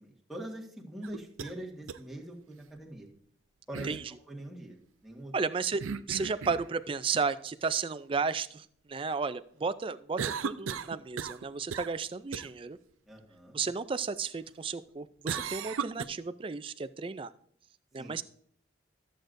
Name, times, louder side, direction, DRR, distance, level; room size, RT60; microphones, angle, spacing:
voice 1, 0.0-3.1 3.7-3.9 4.3-4.8 5.0-5.3 13.1-13.6 18.0-18.2, right 1 dB, ahead, -3 dB, 1.6 m, -43 dB
sound 1, 1.0-1.5 1.9-2.0 3.7-4.0 5.8-6.7 10.2-11.5 11.7-12.0 12.3-12.5 15.3-16.1, right 6 dB, 85° right, 0.5 m, -36 dB
voice 2, 5.3-5.8 6.1-12.8 13.5-17.3 17.9-18.2, right 5 dB, 25° right, 13 dB, 0.3 m, -33 dB
13.5 x 7.7 x 2.6 m, 0.62 s
head